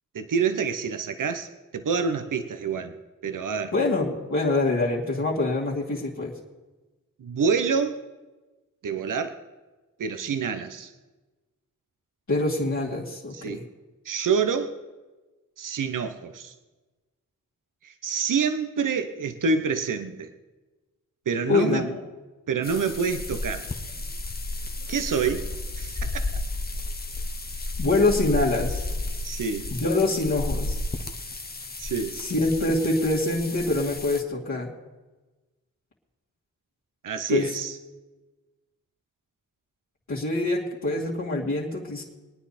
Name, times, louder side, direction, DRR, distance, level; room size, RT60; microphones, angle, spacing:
voice 1, 0.1-2.9 3.2-3.7 7.2-8.1 8.8-9.4 10.0-10.9 13.3-13.6 14.0-14.8 15.6-16.5 17.8-20.3 21.3-21.9 22.5-23.6 24.9-25.5 25.8-26.3 29.2-29.7 31.8-32.2 37.0-37.8, right 5 dB, 70° right, 8 dB, 1.0 m, -27 dB
voice 2, 3.7-6.3 12.3-13.6 21.5-22.0 27.8-28.9 29.7-30.8 32.1-34.7 37.3-37.5 40.1-42.0, left 2 dB, 55° left, -8 dB, 2.6 m, -25 dB
sound 1, 22.6-34.2, left 2 dB, 30° left, 1.1 m, -32 dB
23.5 x 9.5 x 4.3 m, 1.2 s
cardioid pair, 55°, 32 cm